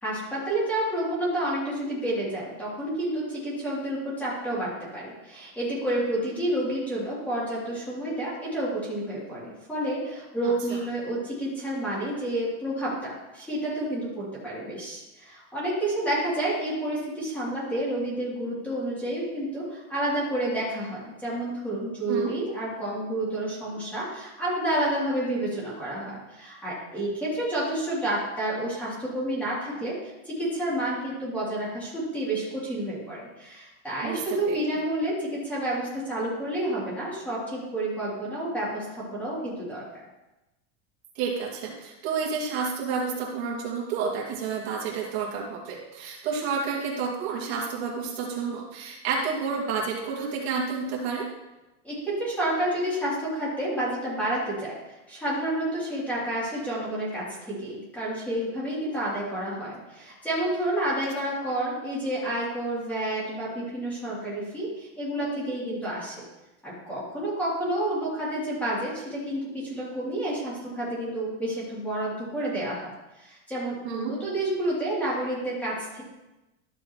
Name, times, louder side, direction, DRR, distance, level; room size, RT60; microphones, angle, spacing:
voice 1, 0.0-30.0 30.2-39.8 51.8-54.8 55.1-66.2 66.6-76.0, right 1 dB, 5° left, -8 dB, 3.0 m, -30 dB
voice 2, 10.4-10.8 22.1-22.4 34.0-34.6 41.2-51.3 73.8-74.2, right 5 dB, 60° right, -3 dB, 2.4 m, -30 dB
13.0 x 7.1 x 3.1 m, 1.0 s
supercardioid pair, 170°, 36 cm